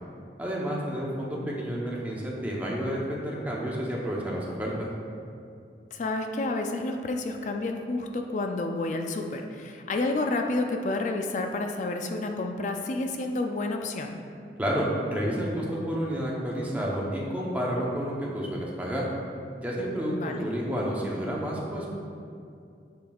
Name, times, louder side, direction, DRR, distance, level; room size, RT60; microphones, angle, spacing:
voice 1, 0.4-4.9 14.6-19.1 19.6-21.9, equal, 10° right, -4 dB, 0.8 m, -30 dB
voice 2, 5.9-14.2 20.1-20.5, left 2 dB, 45° left, 4 dB, 0.3 m, -30 dB
7.8 x 5.1 x 2.3 m, 2.4 s
head